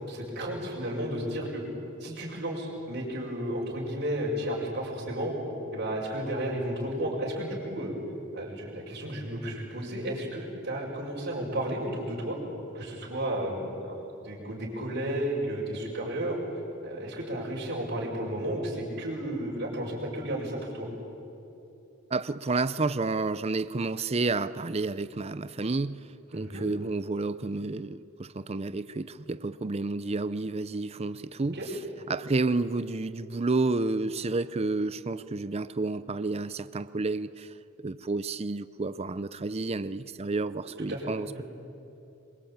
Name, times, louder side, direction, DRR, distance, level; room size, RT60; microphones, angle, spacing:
voice 1, 0.1-1.6 2.0-5.3 5.7-7.9 8.3-12.4 12.7-16.4 16.8-20.9 26.3-26.6 31.5-31.7 40.8-41.0 41.3-41.4, right 1 dB, 55° right, -5 dB, 5.8 m, -33 dB
voice 2, 22.1-26.1 26.3-31.6 32.1-37.5 37.8-41.3, right 3 dB, 30° right, 15 dB, 0.6 m, -30 dB
27.0 x 22.5 x 8.8 m, 2.9 s
head